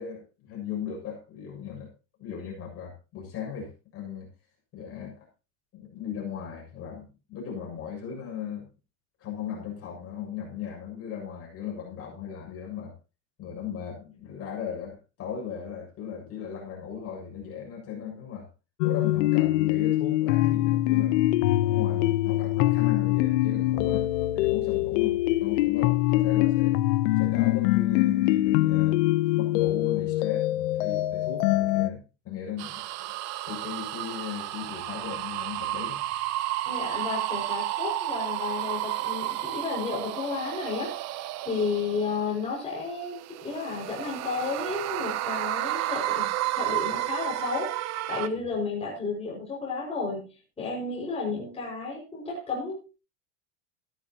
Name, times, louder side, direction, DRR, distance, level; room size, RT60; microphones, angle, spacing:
voice 1, 0.0-1.9 2.2-4.3 4.7-5.3 5.7-8.7 9.2-13.0 13.4-18.5 18.8-21.3 21.6-26.8 27.2-29.0 29.4-32.8 33.5-36.3, left 8 dB, 35° left, -1 dB, 7.1 m, -37 dB
sound 1, 18.8-31.9, left 16 dB, 65° left, 0.9 m, -24 dB
sound 2, 32.6-42.5 43.0-48.3, right 15 dB, 40° right, 0.9 m, -32 dB
voice 2, 36.6-40.9 41.4-43.2 43.4-50.3 50.6-52.8, left 4 dB, 15° left, -5 dB, 6.0 m, -32 dB
14.5 x 13.5 x 3.0 m, 0.31 s
supercardioid pair, 130°, 39 cm